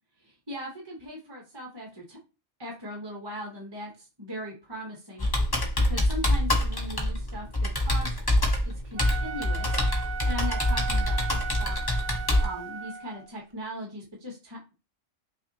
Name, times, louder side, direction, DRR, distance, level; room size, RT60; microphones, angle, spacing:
voice 1, 0.2-2.2 2.6-8.2 8.6-11.8 12.4-14.8, equal, 25° right, -2 dB, 0.8 m, -39 dB
Computer keyboard, 5.2-12.5, left 1 dB, 25° left, 0.7 m, -25 dB
Wind instrument woodwind instrument, 8.8-13.3, right 7 dB, 70° right, 1.0 m, -36 dB
5.6 x 2.6 x 2.7 m, 0.32 s
omnidirectional pair, 1.3 m